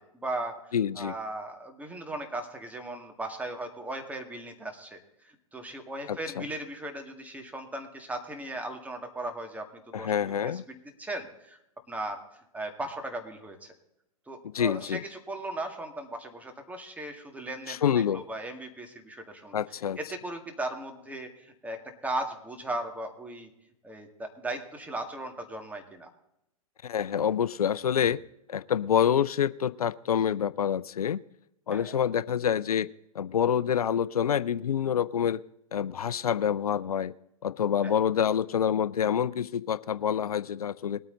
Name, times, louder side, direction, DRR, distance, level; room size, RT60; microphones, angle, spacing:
voice 1, 0.1-9.7 10.0-11.6 11.9-12.2 12.5-13.7 14.3-17.8 18.1-19.6 20.0-23.5 23.8-26.1 31.7-31.9 37.8-37.9, right 2 dB, 10° right, 4 dB, 2.0 m, -37 dB
voice 2, 0.7-1.1 6.4-6.5 9.9-10.6 14.5-15.0 17.7-18.2 19.5-20.0 26.8-28.2 28.5-31.2 31.7-32.9 33.1-35.4 35.7-37.1 37.4-41.0, left 8 dB, 85° left, 18 dB, 0.5 m, -27 dB
21.0 x 8.9 x 3.9 m, 0.83 s
hypercardioid pair, 115°, 18 cm